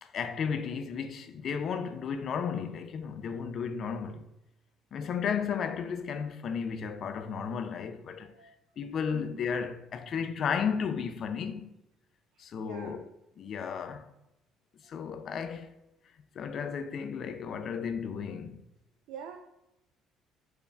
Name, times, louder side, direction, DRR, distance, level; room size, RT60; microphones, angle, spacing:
voice 1, 0.0-4.3 4.9-8.3 8.8-11.8 12.4-13.0 13.4-14.1 14.8-15.7 16.4-18.6, left 6 dB, 45° left, 0.3 m, -34 dB
voice 2, 9.1-9.4 12.3-13.0 19.1-19.4, right 7 dB, 75° right, 0.3 m, -45 dB
4.4 x 2.3 x 3.3 m
cardioid pair, 140°, 0 cm